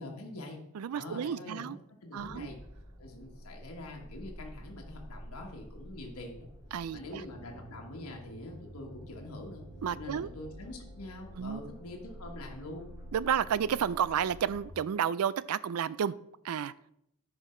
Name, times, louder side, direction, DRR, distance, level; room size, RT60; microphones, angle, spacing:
voice 1, 0.0-0.6 0.9-2.6 3.0-6.5 6.9-9.7 9.9-12.9, left 2 dB, 85° left, 1.3 m, -44 dB
voice 2, 0.7-1.8 2.1-2.5 6.7-7.2 9.8-10.3 11.4-11.6 13.1-16.1 16.4-16.7, right 8 dB, 80° right, 0.4 m, -31 dB
sound 1, 2.2-14.7, equal, 20° right, 2.6 m, -49 dB
10.0 x 5.0 x 4.3 m
head